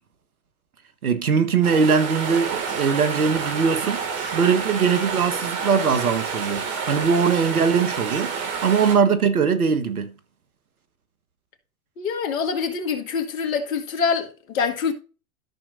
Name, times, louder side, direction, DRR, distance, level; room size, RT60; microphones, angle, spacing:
voice 1, 1.0-4.0 4.3-8.4 8.6-10.1, right 6 dB, 85° right, 1.5 m, -21 dB
sound 1, 1.6-9.0, right 5 dB, 35° right, 2.4 m, -29 dB
voice 2, 12.0-14.9, left 6 dB, 70° left, 2.2 m, -25 dB
13.0 x 6.1 x 2.7 m
hypercardioid pair, 105°, 43 cm